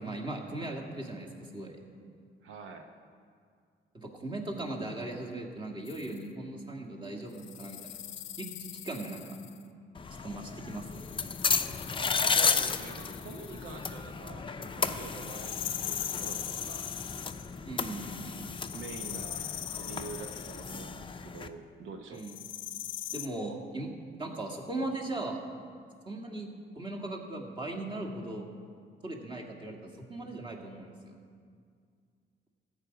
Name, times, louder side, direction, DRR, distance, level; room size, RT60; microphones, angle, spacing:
voice 1, 0.0-1.8 3.9-8.0 8.4-9.4 10.2-11.2 17.7-18.4 22.1-22.4 23.1-25.4 26.1-28.5 29.0-29.8 30.1-31.2, right 2 dB, 25° right, -1 dB, 1.9 m, -38 dB
voice 2, 2.4-2.9 12.2-16.8 18.7-19.5 19.8-22.2, right 4 dB, 85° right, 4 dB, 0.9 m, -46 dB
sound 1, 5.9-6.2 7.3-9.6 10.8-14.0 15.1-17.6 18.5-20.9 22.2-23.3, left 11 dB, 75° left, 0.6 m, -41 dB
sound 2, 9.9-21.5, left 5 dB, 25° left, 0.5 m, -34 dB
14.0 x 5.4 x 8.1 m, 2.2 s
cardioid pair, 90°, 20 cm